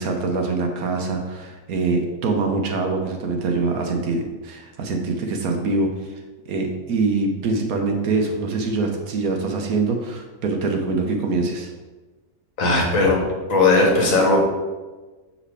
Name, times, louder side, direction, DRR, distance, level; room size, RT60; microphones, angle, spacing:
voice 1, 0.0-6.1 6.5-11.7, right 3 dB, 65° right, 3 dB, 1.2 m, -24 dB
voice 2, 12.6-13.2 13.5-14.4, left 2 dB, 55° left, 0 dB, 1.5 m, -17 dB
6.6 x 4.9 x 3.3 m, 1.2 s
omnidirectional pair, 1.7 m